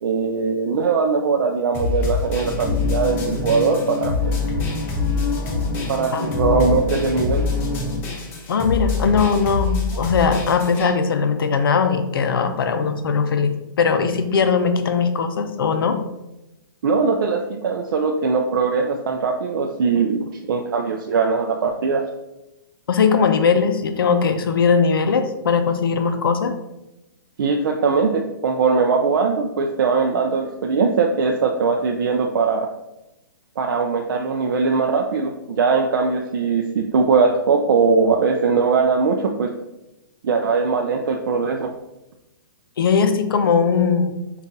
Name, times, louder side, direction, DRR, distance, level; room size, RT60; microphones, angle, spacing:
voice 1, 0.0-4.4 5.9-7.5 16.8-22.0 27.4-32.7 33.6-39.5 40.2-41.7, right 5 dB, 65° right, 2 dB, 0.4 m, -20 dB
sound 1, 1.7-10.9, left 4 dB, 15° left, 0.5 m, -25 dB
sound 2, 2.4-8.0, left 3 dB, 60° left, 1.2 m, -28 dB
voice 2, 8.5-16.0 22.9-26.5 42.8-44.2, left 5 dB, 75° left, 8 dB, 0.5 m, -19 dB
5.3 x 2.4 x 2.7 m, 0.95 s
hypercardioid pair, 160°, 12 cm